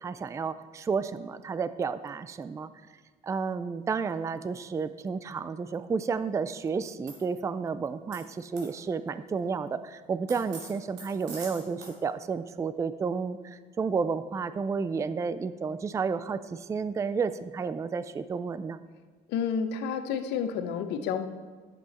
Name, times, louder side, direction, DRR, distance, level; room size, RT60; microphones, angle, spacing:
voice 1, 0.0-2.7 3.2-18.8, right 5 dB, 20° right, 14 dB, 0.3 m, -31 dB
sound 1, 7.1-7.2 8.1-8.2 8.6-8.7 10.3-11.9, right 3 dB, 85° right, 2.5 m, -43 dB
voice 2, 19.3-21.3, left 7 dB, 85° left, 9 dB, 0.8 m, -30 dB
10.5 x 7.7 x 4.2 m, 1.5 s
cardioid pair, 110°, 17 cm